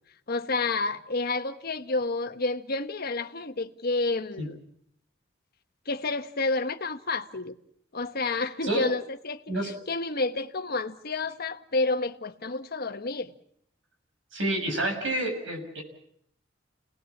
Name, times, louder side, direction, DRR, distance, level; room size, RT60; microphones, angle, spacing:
voice 1, 0.3-4.6 5.9-7.6 7.9-13.3, left 3 dB, 50° left, 1.3 m, -30 dB
voice 2, 8.2-8.9 9.5-9.7 14.3-15.8, right 1 dB, 70° right, 7.0 m, -29 dB
29.5 x 19.5 x 7.3 m
head